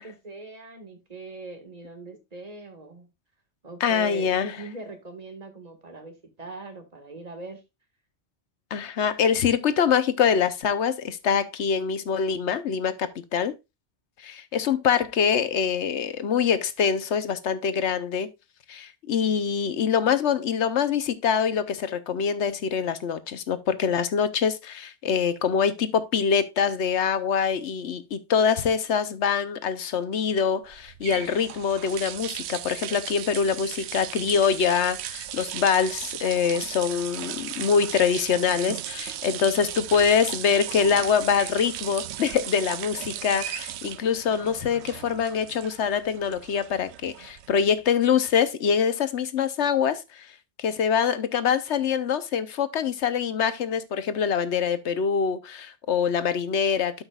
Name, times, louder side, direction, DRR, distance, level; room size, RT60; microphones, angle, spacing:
voice 1, 0.0-3.1 3.6-7.6, right 2 dB, 35° right, 1.8 m, -41 dB
voice 2, 3.8-4.6 8.7-13.5 14.2-18.3 18.7-50.3 50.6-57.0, left 7 dB, 90° left, 1.1 m, -24 dB
sound 1, 30.7-47.7, right 12 dB, 75° right, 0.8 m, -36 dB
12.0 x 5.7 x 2.3 m
omnidirectional pair, 1.1 m